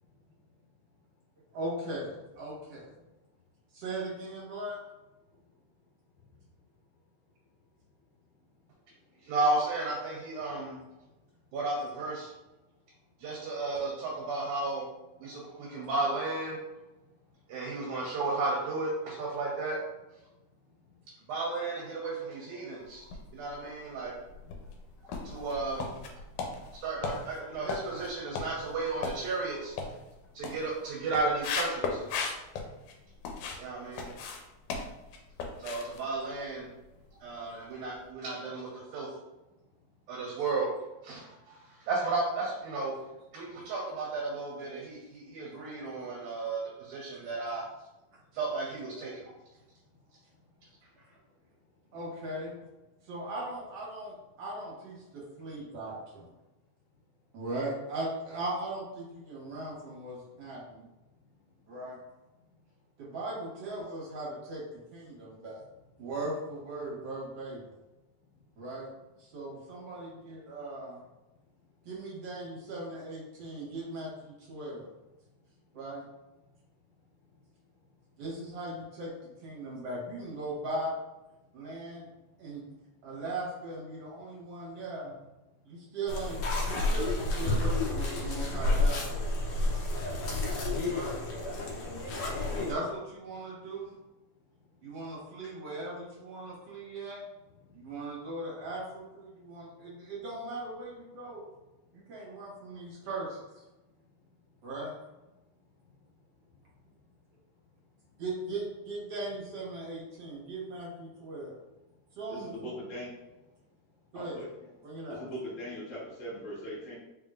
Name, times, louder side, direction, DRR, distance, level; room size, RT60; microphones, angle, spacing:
voice 1, 1.5-2.9 3.7-4.8 51.9-52.6 53.0-56.3 57.3-60.9 61.7-62.0 63.0-64.6 64.9-65.6 66.0-67.6 68.6-68.9 69.2-71.0 71.9-74.9 75.7-76.0 78.2-81.0 81.5-82.1 82.4-82.7 83.0-85.2 85.7-89.3 90.8-91.1 92.5-93.9 94.8-97.2 97.7-101.4 101.9-103.4 104.6-104.9 108.2-111.6 112.2-112.7 114.1-114.4 114.8-115.2, right 2 dB, 55° right, -6 dB, 2.0 m, -38 dB
voice 2, 9.2-10.8 11.5-12.3 13.2-14.8 15.2-16.6 17.5-19.8 21.3-23.1 23.3-24.1 25.2-25.9 26.8-29.8 30.3-32.0 33.6-34.1 35.6-36.7 37.2-39.1 40.1-40.7 41.0-43.0 43.3-47.6 48.3-49.3, right 3 dB, 75° right, -3 dB, 2.1 m, -33 dB
sound 1, 23.0-23.7 24.2-33.7 33.9-37.1 37.3-37.6 38.0-38.1, left 4 dB, 85° left, 2.1 m, -37 dB
sound 2, 86.1-92.7, left 2 dB, 70° left, 1.7 m, -30 dB
voice 3, 112.3-113.1 114.1-114.5 115.1-116.9, equal, 50° left, -7 dB, 0.9 m, -40 dB
4.8 x 3.7 x 2.4 m, 1.0 s
omnidirectional pair, 3.6 m